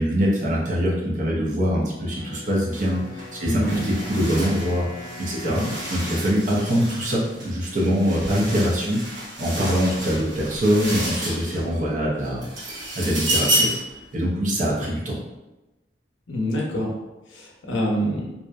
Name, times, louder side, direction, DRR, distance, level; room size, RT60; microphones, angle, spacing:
voice 1, 0.0-4.9 5.2-5.6 5.9-12.5 12.7-13.8 14.1-15.2, equal, 40° right, -4 dB, 0.5 m, -23 dB
Wind instrument woodwind instrument, 2.1-8.1, left 2 dB, 5° left, 1.0 m, -43 dB
sound 1, 2.7-2.9 3.2-11.8 12.2-13.9, right 1 dB, 80° right, 1.0 m, -30 dB
voice 2, 3.4-3.8 5.4-5.7 16.3-16.9 17.3-18.3, equal, 80° left, -2 dB, 0.6 m, -26 dB
2.6 x 2.0 x 2.3 m, 1.0 s
head